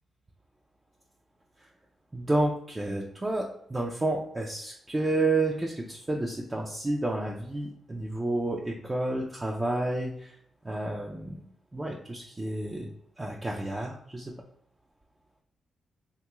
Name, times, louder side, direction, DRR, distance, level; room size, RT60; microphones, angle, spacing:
voice 1, 2.1-10.4 10.6-11.4 11.7-12.9 13.2-14.3, right 2 dB, 20° right, -2 dB, 0.4 m, -30 dB
3.1 x 2.3 x 2.9 m, 0.68 s
cardioid pair, 85°, 0 cm